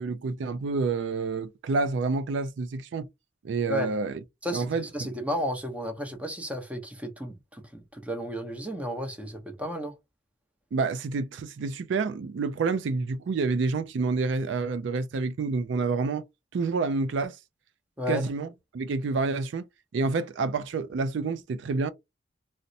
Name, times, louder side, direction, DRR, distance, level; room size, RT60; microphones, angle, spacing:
voice 1, 0.0-3.1 3.4-4.2 4.5-5.1 10.7-16.2 16.5-17.4 18.1-18.5 18.7-19.7 19.9-21.9, right 4 dB, 70° right, 0.4 m, -28 dB
voice 2, 4.4-9.9 18.0-18.2, equal, 5° right, 0.6 m, -33 dB
4.0 x 2.1 x 2.6 m
head